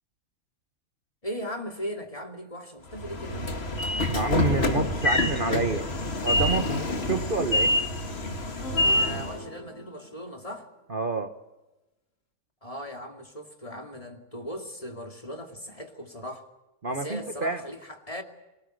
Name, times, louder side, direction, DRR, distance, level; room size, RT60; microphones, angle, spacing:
voice 1, 1.2-3.5 9.0-10.7 12.6-16.5 16.9-18.2, equal, 25° left, 4 dB, 2.5 m, -38 dB
Train / Sliding door, 2.9-9.4, left 1 dB, 45° left, 2.1 m, -26 dB
voice 2, 4.1-5.9 6.2-6.8 7.0-7.7 10.9-11.3 16.8-17.6, right 3 dB, 40° right, 7 dB, 1.3 m, -28 dB
sound 1, 8.6-10.5, left 2 dB, 60° left, 3.4 m, -39 dB
24.5 x 19.0 x 7.9 m, 1.0 s
omnidirectional pair, 1.4 m